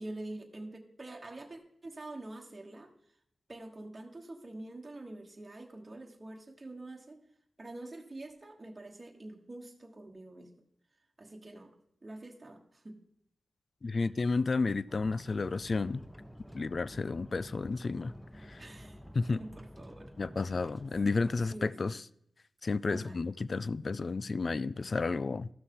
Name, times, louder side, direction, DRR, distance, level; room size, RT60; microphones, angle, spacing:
voice 1, 0.0-2.9 3.5-7.2 7.6-10.5 11.2-11.7 12.0-13.0 13.8-14.2 18.6-19.0 19.3-20.1 20.4-20.7 21.3-22.0 22.9-23.2, right 2 dB, 30° right, 1.4 m, -46 dB
voice 2, 13.8-16.0 16.5-18.1 18.5-18.6 19.1-19.4 20.2-22.0 22.6-25.5, left 3 dB, 55° left, 0.3 m, -31 dB
sound 1, 14.9-21.6, equal, ahead, 0.8 m, -50 dB
14.5 x 6.2 x 3.8 m
cardioid pair, 55°, 0 cm